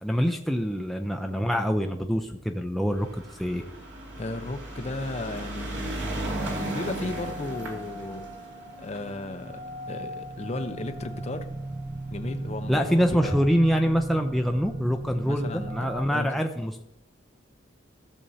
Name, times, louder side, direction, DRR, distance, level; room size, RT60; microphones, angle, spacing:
voice 1, 0.0-3.1 3.3-3.6 12.7-16.8, equal, ahead, 3 dB, 0.5 m, -25 dB
sound 1, 2.9-11.4 12.2-12.3 12.5-12.6 12.8-12.9, right 1 dB, 80° right, 2.3 m, -36 dB
voice 2, 4.2-6.1 6.7-8.3 8.7-9.6 9.9-11.5 12.1-13.4 15.2-16.4, left 2 dB, 35° left, 7 dB, 0.7 m, -35 dB
sound 2, 4.7-16.0, right 1 dB, 45° right, 0.8 m, -38 dB
15.5 x 7.0 x 2.7 m, 0.81 s
head